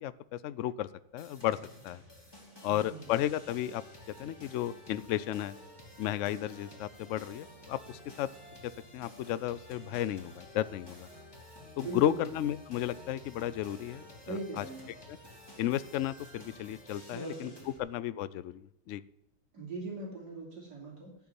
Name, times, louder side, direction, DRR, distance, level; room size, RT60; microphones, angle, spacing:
voice 1, 0.0-1.6 1.8-2.0 2.6-5.5 6.0-8.3 8.6-11.1 11.8-14.6 15.1-15.2 15.6-17.5 17.8-19.0, left 12 dB, 85° left, 17 dB, 0.6 m, -33 dB
sound 1, 1.2-17.8, left 1 dB, 15° left, 2.5 m, -52 dB
voice 2, 2.5-3.1 11.8-12.2 14.2-14.9 17.1-17.8 19.5-21.2, right 3 dB, 65° right, -3 dB, 3.5 m, -41 dB
12.5 x 5.9 x 9.4 m, 0.85 s
omnidirectional pair, 1.9 m